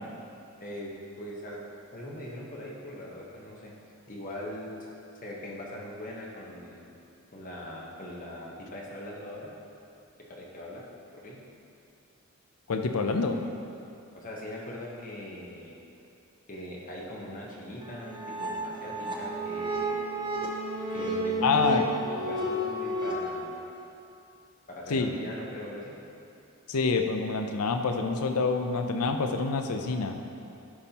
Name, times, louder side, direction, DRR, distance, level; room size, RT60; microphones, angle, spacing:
voice 1, 0.6-1.6 1.9-3.7 4.1-4.9 5.2-6.9 7.3-9.5 10.3-10.9 11.1-11.4 14.1-15.7 16.5-20.0 20.9-21.8 22.1-23.6 24.7-26.0, left 1 dB, 35° left, -3 dB, 1.0 m, -41 dB
voice 2, 12.7-13.4 21.4-21.8 24.9-25.1 26.7-30.2, left 4 dB, 85° left, 6 dB, 0.5 m, -27 dB
sound 1, 17.8-23.1, right 1 dB, 20° right, 0.7 m, -32 dB
11.5 x 5.4 x 2.9 m, 2.7 s
head